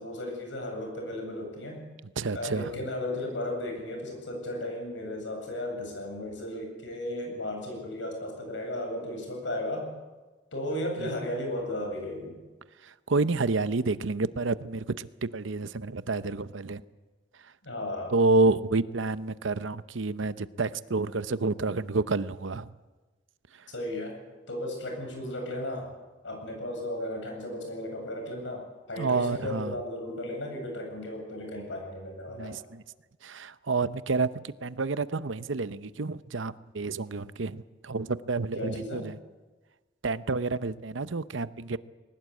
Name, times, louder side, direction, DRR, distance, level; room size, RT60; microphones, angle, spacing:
voice 1, 0.0-1.9 2.3-9.9 10.5-12.4 17.6-18.1 23.7-24.1 24.5-25.9 26.2-32.5 38.5-39.1, left 1 dB, 70° left, 2 dB, 7.9 m, -35 dB
voice 2, 2.2-2.6 13.1-15.1 15.3-16.8 18.1-22.7 29.0-29.7 32.4-32.8 33.2-39.2 40.0-41.8, right 3 dB, 80° right, 14 dB, 0.8 m, -29 dB
21.5 x 19.5 x 8.5 m, 1.2 s
head